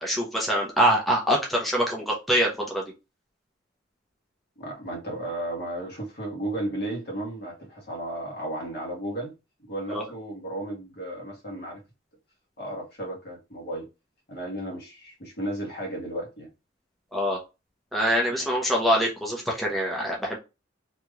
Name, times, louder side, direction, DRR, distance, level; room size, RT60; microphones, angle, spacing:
voice 1, 0.0-2.8 9.9-10.0 17.1-17.4 17.9-20.4, equal, ahead, 0.7 m, -24 dB
voice 2, 4.6-9.3 9.6-11.8 12.6-13.9 14.3-16.5 18.3-18.5, right 1 dB, 55° left, 1.3 m, -34 dB
3.2 x 2.8 x 2.3 m
head